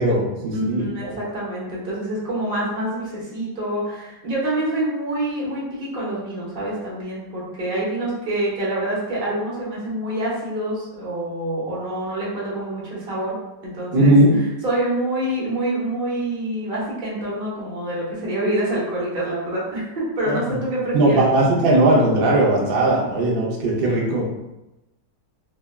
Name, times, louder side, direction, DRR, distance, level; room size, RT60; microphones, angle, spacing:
voice 1, 0.0-1.1 13.9-14.4 20.2-20.4 20.9-24.2, right 1 dB, 75° right, -3 dB, 0.5 m, -18 dB
voice 2, 0.5-13.4 13.6-14.1 14.6-21.3, right 1 dB, 40° right, -6 dB, 0.9 m, -26 dB
3.2 x 2.2 x 2.2 m, 0.96 s
omnidirectional pair, 1.9 m